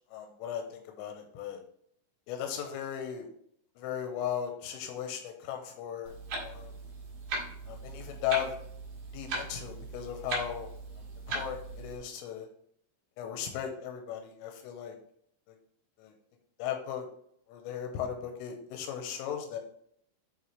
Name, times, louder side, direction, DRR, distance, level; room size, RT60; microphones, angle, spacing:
voice 1, 0.1-1.6 2.3-3.3 3.8-6.1 6.4-6.7 7.7-8.6 9.1-10.7 11.3-12.5 13.2-15.0 15.5-15.6 16.0-16.1 16.6-17.1 17.5-19.6, left 9 dB, 85° left, 3 dB, 3.2 m, -36 dB
Clock, 6.0-12.0, right 2 dB, 65° right, 2.0 m, -39 dB
7.7 x 4.2 x 3.1 m, 0.68 s
omnidirectional pair, 5.7 m